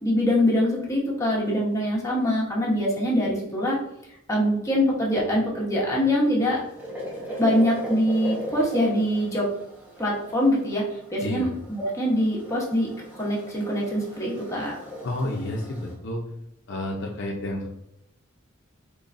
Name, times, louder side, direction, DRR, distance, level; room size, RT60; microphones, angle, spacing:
voice 1, 0.0-3.8 4.3-6.6 7.4-9.5 10.0-10.8 11.1-11.5 11.8-12.9 13.2-14.8, equal, 15° left, -4 dB, 0.9 m, -23 dB
Brew a cup of coffee, 6.3-15.9, equal, 10° right, 0.9 m, -38 dB
voice 2, 15.0-16.2 16.7-17.7, left 1 dB, 60° left, 0 dB, 0.6 m, -30 dB
3.9 x 3.1 x 2.5 m, 0.79 s
head